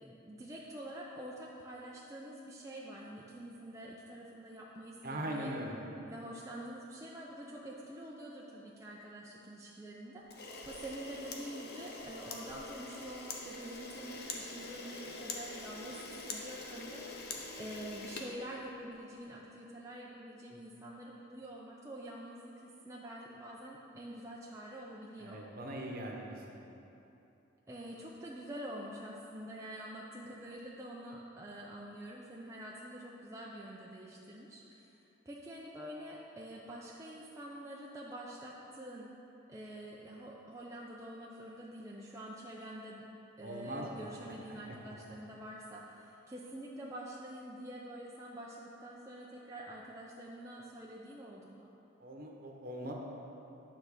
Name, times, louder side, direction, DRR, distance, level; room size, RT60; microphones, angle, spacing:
voice 1, 0.0-5.6 6.1-17.1 17.6-25.4 27.7-34.9 35.3-39.1 39.5-43.0 43.4-51.7, right 1 dB, 15° right, -4 dB, 0.5 m, -46 dB
voice 2, 5.0-5.7 25.2-26.2 26.5-26.6 43.4-44.1 52.0-52.9, right 1 dB, 45° right, 0 dB, 1.0 m, -40 dB
Camera, 10.3-19.0, left 3 dB, 50° left, 0.8 m, -44 dB
9.5 x 3.9 x 6.5 m, 3.0 s
head